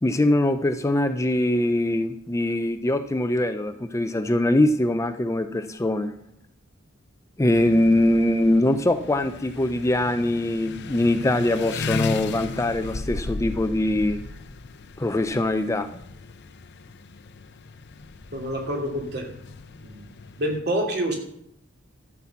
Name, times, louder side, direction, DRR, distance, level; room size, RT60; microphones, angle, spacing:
voice 1, 0.0-6.1 7.4-14.2 15.0-16.0, left 1 dB, 15° left, 9 dB, 0.5 m, -22 dB
sound 1, 7.5-20.6, left 4 dB, 60° left, 0.7 m, -36 dB
voice 2, 18.3-19.3 19.8-20.1 20.4-21.2, equal, 55° right, 0 dB, 2.8 m, -27 dB
13.0 x 6.1 x 7.1 m, 0.75 s
head